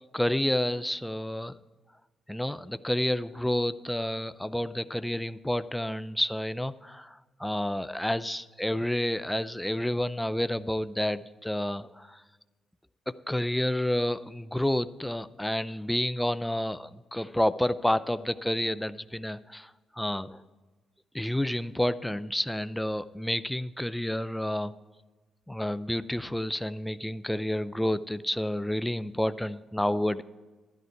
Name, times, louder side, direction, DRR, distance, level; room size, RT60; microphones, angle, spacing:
voice 1, 0.1-1.5 2.3-12.2 13.3-19.7 20.0-20.4 21.1-24.7 25.5-30.2, left 1 dB, 5° left, 14 dB, 0.5 m, -29 dB
11.5 x 11.0 x 4.6 m, 1.3 s
cardioid pair, 90°, 0 cm